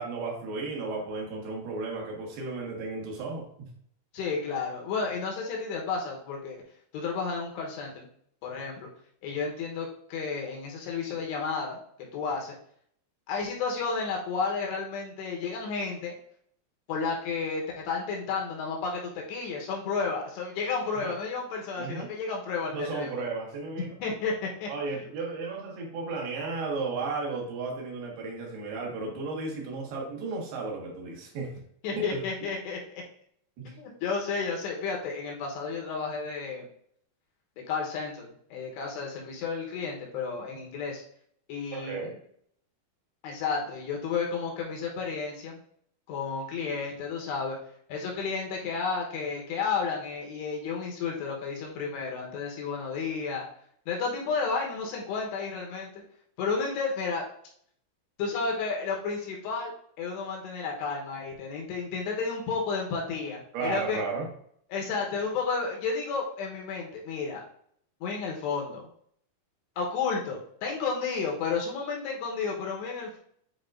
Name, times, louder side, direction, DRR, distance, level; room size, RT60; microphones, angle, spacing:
voice 1, 0.0-3.7 21.0-21.1 21.8-22.1 22.7-23.9 24.7-31.5 32.1-32.2 33.6-33.7 41.7-42.2 63.5-64.3, right 3 dB, 65° right, -1 dB, 3.2 m, -34 dB
voice 2, 4.1-6.6 6.9-8.1 8.4-8.9 9.2-11.8 12.1-12.6 13.3-16.2 16.9-23.1 24.0-24.7 31.8-32.8 33.8-36.7 37.7-41.0 41.5-42.1 43.2-45.6 46.1-47.6 47.9-53.5 53.9-56.0 56.4-57.2 58.2-64.0 64.7-67.4 68.0-68.9 69.8-73.2, left 5 dB, 75° left, 0 dB, 2.9 m, -32 dB
9.8 x 4.2 x 2.5 m, 0.64 s
omnidirectional pair, 5.5 m